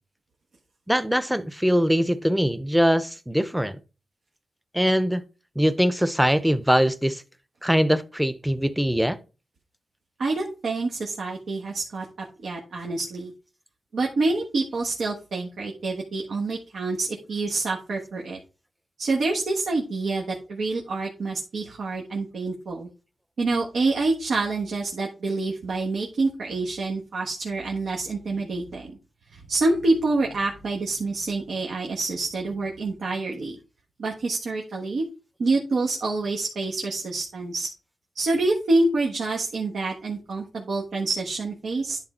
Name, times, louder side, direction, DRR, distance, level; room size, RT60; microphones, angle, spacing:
voice 1, 0.9-3.8 4.7-5.2 5.6-7.2 7.6-9.2, equal, 5° right, 0.7 m, -22 dB
voice 2, 10.2-12.1 12.4-13.3 13.9-18.4 19.0-22.9 23.4-28.9 29.3-33.6 34.0-35.0 35.4-37.7 38.1-42.0, right 3 dB, 80° right, 1.3 m, -27 dB
10.5 x 3.7 x 4.3 m
cardioid pair, 90°, 0 cm